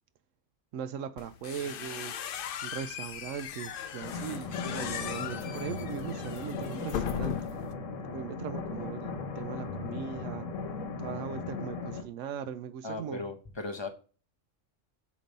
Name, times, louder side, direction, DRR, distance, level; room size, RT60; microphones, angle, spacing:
voice 1, 0.7-2.2 2.6-7.5 8.1-10.5 11.0-13.3, right 8 dB, 85° right, 1.0 m, -39 dB
sound 1, 1.2-7.7, left 8 dB, 60° left, 0.6 m, -38 dB
sound 2, 4.0-12.0, left 4 dB, 85° left, 1.4 m, -37 dB
voice 2, 12.8-13.9, left 3 dB, 25° left, 0.9 m, -37 dB
8.5 x 3.1 x 5.2 m
omnidirectional pair, 1.3 m